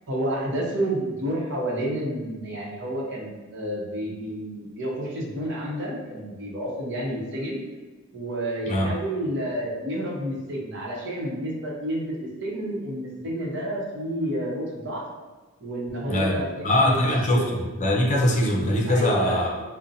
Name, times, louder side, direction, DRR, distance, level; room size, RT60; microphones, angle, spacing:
voice 1, 0.1-7.6 8.1-15.0 15.6-17.6 18.9-19.4, right 1 dB, 55° right, -4 dB, 0.9 m, -30 dB
voice 2, 16.1-19.6, left 1 dB, 35° left, -1 dB, 0.6 m, -22 dB
5.4 x 2.2 x 2.6 m, 1.2 s
head